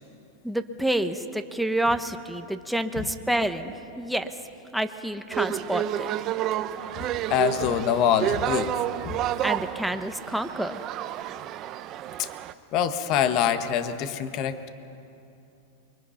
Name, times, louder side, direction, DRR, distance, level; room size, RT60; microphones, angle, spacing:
voice 1, 0.4-4.3 4.7-6.1 9.4-10.8, right 1 dB, ahead, 7 dB, 1.1 m, -28 dB
sound 1, 5.3-12.5, right 12 dB, 40° right, 0.8 m, -30 dB
voice 2, 7.0-9.2 12.2-12.3 12.7-14.7, left 9 dB, 45° left, 9 dB, 1.4 m, -25 dB
28.0 x 23.5 x 5.8 m, 2.8 s
supercardioid pair, 130°, 0 cm